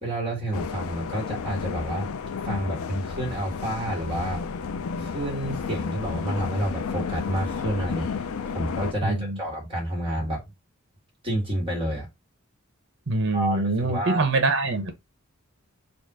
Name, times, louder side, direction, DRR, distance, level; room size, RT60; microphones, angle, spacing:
voice 1, 0.0-2.1 2.4-4.4 5.0-10.4 11.2-12.1 13.3-14.2, right 1 dB, 25° right, 1.9 m, -29 dB
sound 1, 0.5-8.9, left 5 dB, 75° left, 0.5 m, -32 dB
voice 2, 9.0-9.4 13.1-14.9, right 2 dB, 55° right, 1.1 m, -24 dB
4.2 x 2.5 x 4.7 m
head